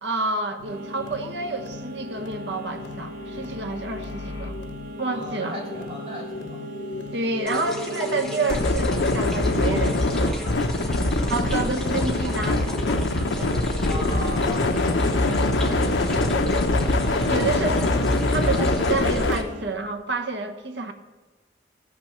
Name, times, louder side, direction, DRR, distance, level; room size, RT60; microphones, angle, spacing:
voice 1, 0.0-4.5 5.0-5.6 7.1-10.5 11.3-13.6 17.2-20.9, right 3 dB, 75° right, 6 dB, 1.1 m, -29 dB
sound 1, 0.6-19.5, left 2 dB, 90° left, 0.7 m, -25 dB
sound 2, 0.7-19.8, left 1 dB, 50° right, 0.9 m, -40 dB
voice 2, 5.1-6.7 11.0-11.3 11.5-11.7 13.8-15.1, equal, 35° right, -3 dB, 2.8 m, -37 dB
sound 3, 7.5-19.4, left 1 dB, 5° left, 1.0 m, -37 dB
14.5 x 6.0 x 6.6 m, 1.3 s
head